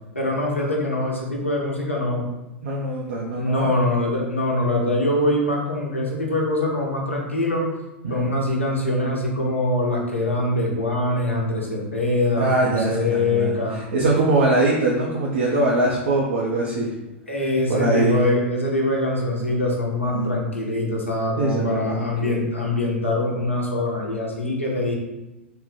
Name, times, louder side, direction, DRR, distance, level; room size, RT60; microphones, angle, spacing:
voice 1, 0.1-2.3 3.4-7.6 8.1-13.8 17.3-24.9, left 1 dB, 85° left, -2 dB, 0.9 m, -23 dB
voice 2, 2.6-3.7 8.0-8.3 12.3-16.9 17.7-18.2 20.1-20.3 21.4-22.4, right 2 dB, 65° right, -3 dB, 0.6 m, -22 dB
3.5 x 2.1 x 4.2 m, 1.0 s
figure-of-eight pair, 90°, 7 cm